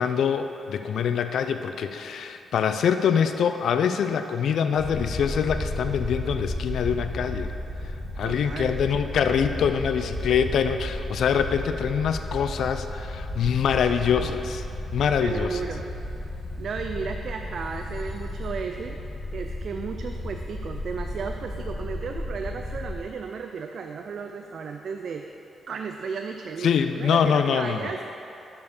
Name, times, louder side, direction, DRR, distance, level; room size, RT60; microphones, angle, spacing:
voice 1, 0.0-7.5 8.2-14.6 14.9-15.6 26.6-27.9, left 7 dB, 75° left, 8 dB, 0.4 m, -24 dB
sound 1, 4.8-23.0, left 1 dB, 50° left, 1.8 m, -33 dB
voice 2, 8.2-8.8 13.8-14.4 15.2-15.9 16.6-19.0 19.3-25.3 25.7-28.0, right 5 dB, 60° right, 5 dB, 0.4 m, -34 dB
sound 2, 15.9-18.9, right 2 dB, 80° right, 1.9 m, -50 dB
7.1 x 5.3 x 6.5 m, 2.8 s
cardioid pair, 115°, 0 cm